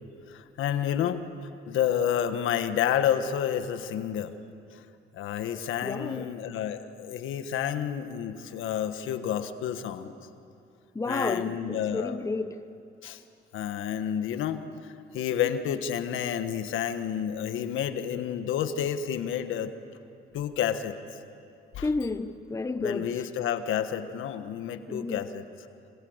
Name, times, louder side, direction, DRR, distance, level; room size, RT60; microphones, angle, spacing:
voice 1, 0.3-1.3 1.7-4.3 4.7-4.8 5.1-10.1 11.1-12.1 13.0-13.2 13.5-19.7 20.3-21.0 21.7-21.9 22.8-25.4, left 9 dB, 85° left, 1.5 m, -30 dB
voice 2, 5.8-6.3 10.9-12.7 21.8-23.2 24.9-25.3, left 3 dB, 15° left, 1.0 m, -31 dB
27.0 x 25.5 x 8.1 m
cardioid pair, 90°, 20 cm